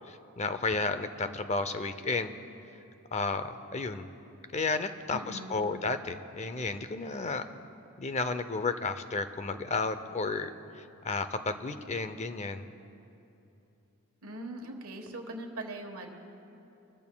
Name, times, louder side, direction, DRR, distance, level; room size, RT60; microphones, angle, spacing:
voice 1, 0.1-2.3 3.1-4.1 4.5-7.4 8.0-12.7, left 3 dB, 30° left, 11 dB, 0.5 m, -32 dB
voice 2, 5.1-5.6 14.2-16.1, right 1 dB, 75° right, 3 dB, 1.3 m, -41 dB
23.5 x 14.0 x 2.3 m, 2.9 s
head